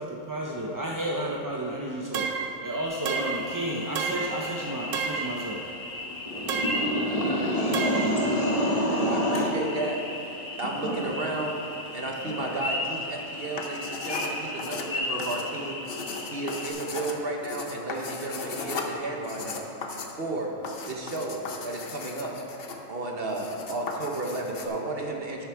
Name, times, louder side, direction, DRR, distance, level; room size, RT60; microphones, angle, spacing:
voice 1, 0.0-2.3 2.6-5.6, right 1 dB, 25° right, -2 dB, 0.4 m, -32 dB
sound 1, 2.1-2.6 3.1-3.5 4.0-4.4 4.9-5.4 6.5-6.9 7.7-8.2, right 6 dB, 80° right, 1.1 m, -30 dB
sound 2, 2.8-16.7, left 2 dB, 75° left, 1.9 m, -36 dB
voice 2, 6.3-9.5 10.8-10.9 12.2-12.5, equal, 30° left, -3 dB, 1.3 m, -26 dB
voice 3, 9.0-10.0 10.6-11.6 11.9-15.8 16.3-19.6 20.2-20.5 20.9-22.3 22.9-25.5, right 2 dB, 50° right, 0 dB, 1.1 m, -33 dB
sound 3, 13.5-24.7, left 4 dB, 50° left, 1.0 m, -37 dB
11.0 x 8.4 x 4.6 m, 3.0 s
omnidirectional pair, 1.3 m